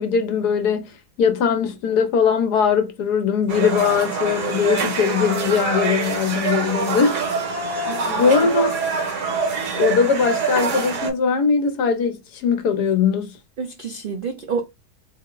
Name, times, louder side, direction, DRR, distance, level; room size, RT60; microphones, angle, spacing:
voice 1, 0.0-7.2 8.0-8.8 9.8-13.3, left 6 dB, 85° left, 1.5 m, -20 dB
sound 1, 3.5-11.1, right 4 dB, 85° right, 1.9 m, -25 dB
voice 2, 7.9-8.3 13.6-14.6, right 5 dB, 70° right, 0.5 m, -29 dB
4.0 x 2.1 x 3.8 m
omnidirectional pair, 1.7 m